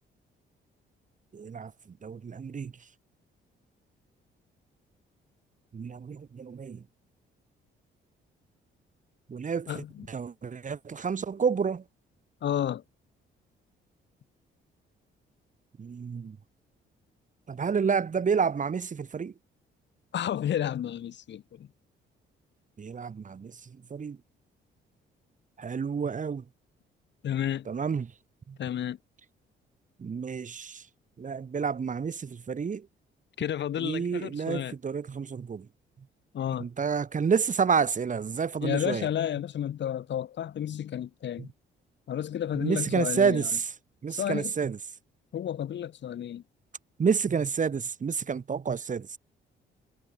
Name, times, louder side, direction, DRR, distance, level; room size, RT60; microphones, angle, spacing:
voice 1, 1.3-2.7 5.7-6.8 9.3-11.8 15.8-16.4 17.5-19.3 22.8-24.2 25.6-26.4 27.7-28.1 28.5-28.6 30.0-30.9 31.2-32.9 33.8-35.7 36.6-39.1 41.4-41.5 42.6-43.7 44.0-44.8 47.0-49.2, right 6 dB, 40° right, 2.8 m, -29 dB
voice 2, 9.7-10.1 12.4-12.8 20.1-21.7 27.2-27.7 28.6-29.0 33.4-34.7 36.3-36.7 38.6-41.5 42.1-43.5 44.1-44.5 45.3-46.4, left 10 dB, 65° left, 2.4 m, -31 dB
cardioid pair, 90°, 20 cm